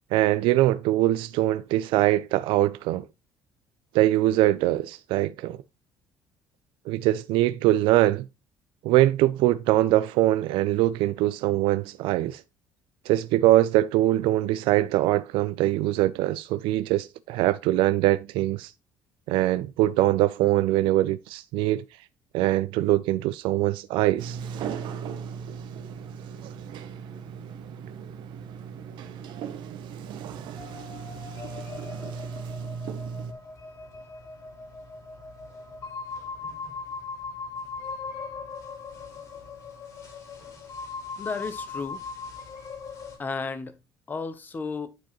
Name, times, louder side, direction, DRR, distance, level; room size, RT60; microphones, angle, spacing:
voice 1, 0.1-3.0 3.9-5.6 6.9-8.3 8.8-12.4 13.1-18.7 19.3-21.8 22.3-24.4 26.4-26.5, right 15 dB, 80° right, 0.4 m, -22 dB
Sliding door, 24.2-33.3, right 7 dB, 60° right, 0.8 m, -37 dB
sound 1, 30.5-43.2, left 4 dB, 40° left, 2.1 m, -39 dB
voice 2, 41.2-42.0 43.2-43.8 44.1-44.9, left 4 dB, 20° left, 0.7 m, -33 dB
9.6 x 4.6 x 3.0 m
cardioid pair, 155°, 9 cm